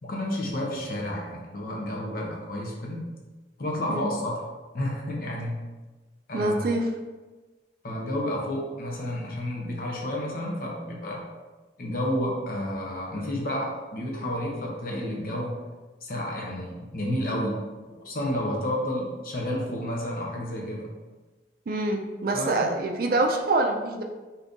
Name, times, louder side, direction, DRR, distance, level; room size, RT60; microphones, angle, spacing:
voice 1, 0.0-3.1 3.6-4.4 4.7-5.6 6.3-6.6 7.8-11.2 11.8-15.6 16.0-17.6 17.9-20.9 22.3-22.5, left 1 dB, 55° left, -1 dB, 0.7 m, -31 dB
voice 2, 6.3-6.9 21.7-24.0, right 2 dB, 55° right, 3 dB, 0.4 m, -25 dB
2.7 x 2.5 x 3.6 m, 1.2 s
head